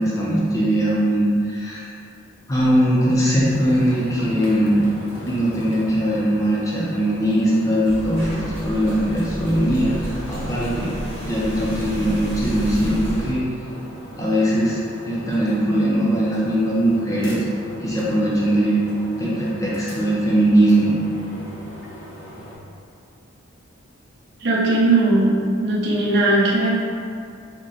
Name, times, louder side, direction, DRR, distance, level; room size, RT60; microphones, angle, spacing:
voice 1, 0.0-1.9 2.5-4.8 5.3-10.9 11.2-13.4 14.1-14.8 15.0-17.4 17.8-18.9 19.2-21.0, right 1 dB, 15° left, -7 dB, 0.4 m, -20 dB
sound 1, 3.4-22.6, equal, 55° left, 0.8 m, -39 dB
sound 2, 7.8-13.3, equal, 85° right, 1.3 m, -31 dB
voice 2, 24.4-26.7, right 2 dB, 50° right, -5 dB, 0.6 m, -18 dB
4.0 x 2.1 x 3.6 m, 2.5 s
head